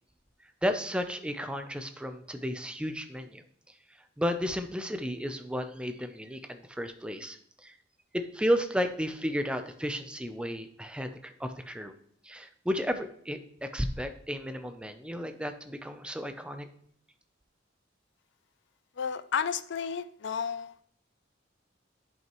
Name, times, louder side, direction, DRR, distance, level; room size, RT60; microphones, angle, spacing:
voice 1, 0.6-3.4 4.2-7.7 8.1-11.9 12.2-16.7, equal, 5° right, 8 dB, 0.5 m, -33 dB
voice 2, 19.0-20.7, left 7 dB, 65° left, 13 dB, 0.4 m, -32 dB
10.5 x 5.6 x 3.0 m, 0.65 s
head